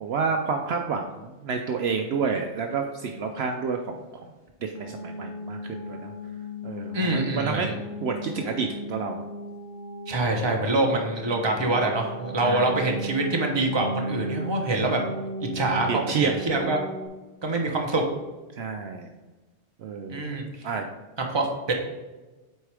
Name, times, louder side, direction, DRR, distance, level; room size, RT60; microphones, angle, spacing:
voice 1, 0.0-4.3 4.6-6.1 6.6-7.7 8.0-9.2 12.4-12.7 15.9-16.3 18.5-19.1 19.8-20.3 20.6-20.9, right 5 dB, 65° right, 4 dB, 0.8 m, -29 dB
sound 1, 4.7-17.1, equal, 65° left, 1.3 m, -36 dB
voice 2, 6.9-7.7 10.1-15.0 15.5-16.8 17.4-18.0 20.1-20.5 21.3-21.7, right 2 dB, 25° right, 1 dB, 0.9 m, -25 dB
8.0 x 4.4 x 3.4 m, 1.2 s
omnidirectional pair, 1.2 m